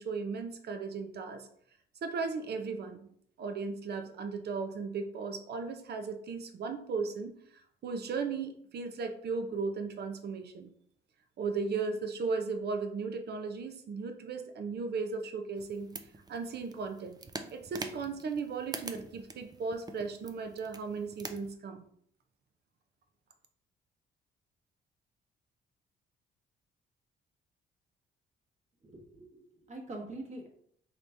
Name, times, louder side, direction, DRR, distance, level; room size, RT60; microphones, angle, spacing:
voice 1, 0.0-1.5 2.0-3.1 3.4-7.3 7.8-10.7 11.4-15.9 16.3-17.2 17.5-21.8, right 4 dB, 55° right, 6 dB, 0.7 m, -36 dB
sound 1, 15.6-21.5, right 3 dB, 20° right, 0.4 m, -45 dB
voice 2, 28.8-30.5, right 2 dB, 35° right, 0 dB, 1.2 m, -44 dB
4.0 x 3.0 x 3.4 m, 0.64 s
cardioid pair, 90°, 20 cm